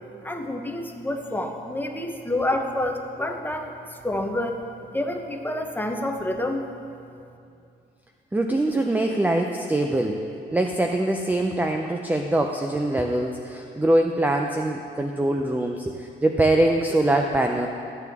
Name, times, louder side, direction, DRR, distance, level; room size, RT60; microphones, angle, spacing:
voice 1, 0.2-4.6 4.9-6.6, left 1 dB, 10° left, 3 dB, 1.0 m, -28 dB
voice 2, 8.3-10.2 10.5-17.7, right 1 dB, 10° right, 3 dB, 0.5 m, -23 dB
14.0 x 8.0 x 3.6 m, 2.5 s
cardioid pair, 90°, 20 cm